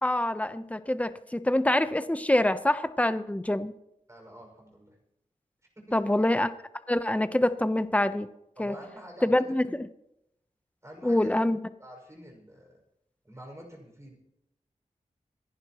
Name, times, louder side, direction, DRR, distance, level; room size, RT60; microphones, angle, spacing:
voice 1, 0.0-3.7 5.9-6.5 6.9-8.3 8.6-8.7 9.2-9.9 11.0-11.6, left 1 dB, 10° left, 12 dB, 0.9 m, -25 dB
voice 2, 4.1-5.0 5.8-6.0 8.6-9.4 10.8-11.4 11.8-12.8 13.2-14.2, equal, 20° right, 1 dB, 5.9 m, -47 dB
27.0 x 11.0 x 3.1 m, 0.82 s
cardioid pair, 60°, 14 cm